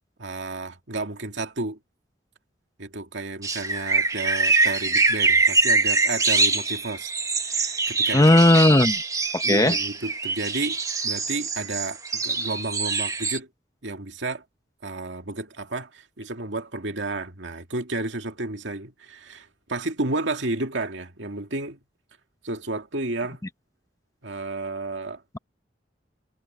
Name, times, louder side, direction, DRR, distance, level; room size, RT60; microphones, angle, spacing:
voice 1, 0.2-1.8 2.8-7.1 7.4-8.4 9.4-13.5 13.8-14.4 14.8-21.8 22.4-23.4 24.2-25.2, right 2 dB, 80° right, 2.3 m, -32 dB
sound 1, 3.4-13.4, right 3 dB, 20° right, 1.4 m, -24 dB
voice 2, 8.1-9.0 9.3-9.8, left 1 dB, 20° left, 1.1 m, -16 dB
head